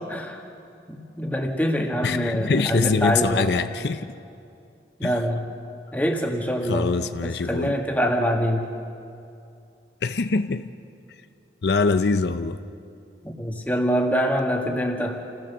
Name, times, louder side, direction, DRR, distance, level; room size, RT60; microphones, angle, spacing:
voice 1, 0.1-0.4 0.9-3.6 5.0-5.5 5.9-6.9 7.2-8.7 13.2-15.2, equal, 10° left, 1 dB, 1.7 m, -25 dB
voice 2, 2.0-4.1 5.0-5.2 6.6-7.8 10.0-10.7 11.6-12.6, left 4 dB, 70° left, 10 dB, 0.6 m, -24 dB
27.5 x 16.0 x 7.2 m, 2.5 s
head